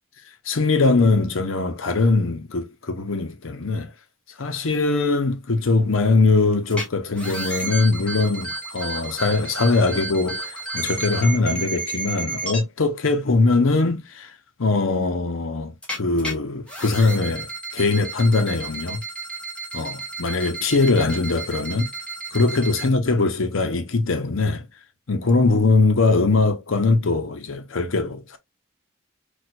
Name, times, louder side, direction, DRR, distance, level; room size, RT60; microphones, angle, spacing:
voice 1, 0.5-3.9 4.4-14.3 14.6-19.0 19.7-21.9 22.3-24.6 25.1-28.4, left 3 dB, 90° left, 0.8 m, -21 dB
sound 1, 6.7-6.8 7.2-12.6 15.8-16.3 16.7-22.9, right 2 dB, 5° left, 1.2 m, -32 dB
4.3 x 2.4 x 2.4 m
head